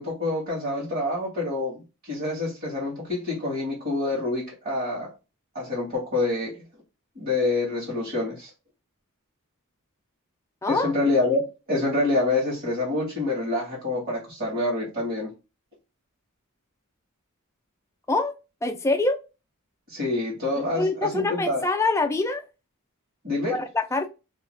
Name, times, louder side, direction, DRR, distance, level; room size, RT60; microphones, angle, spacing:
voice 1, 0.0-5.1 5.5-6.6 7.1-8.5 10.7-15.3 19.9-21.6 23.2-23.6, left 2 dB, 45° right, 1.2 m, -27 dB
voice 2, 10.6-10.9 18.1-18.3 18.6-19.2 20.7-22.4 23.5-24.1, left 3 dB, 15° left, 0.3 m, -25 dB
2.4 x 2.2 x 3.0 m
head